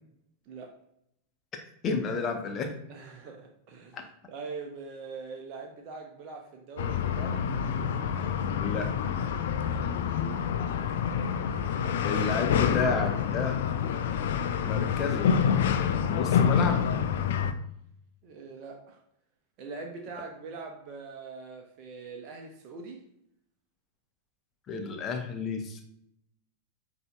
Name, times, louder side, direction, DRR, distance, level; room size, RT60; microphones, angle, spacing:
voice 1, 1.8-2.7 3.9-4.0 8.6-8.9 12.0-13.6 14.6-15.4 16.1-16.9 24.7-25.8, left 4 dB, 30° left, 4 dB, 0.8 m, -30 dB
voice 2, 2.9-4.0 4.3-7.5 9.7-10.5 11.3-11.7 18.2-19.0 19.6-23.0, right 4 dB, 40° right, 1 dB, 0.7 m, -43 dB
sound 1, 6.8-17.5, left 7 dB, 55° left, 0.3 m, -27 dB
7.8 x 2.7 x 2.2 m, 0.75 s
figure-of-eight pair, 90°, 0 cm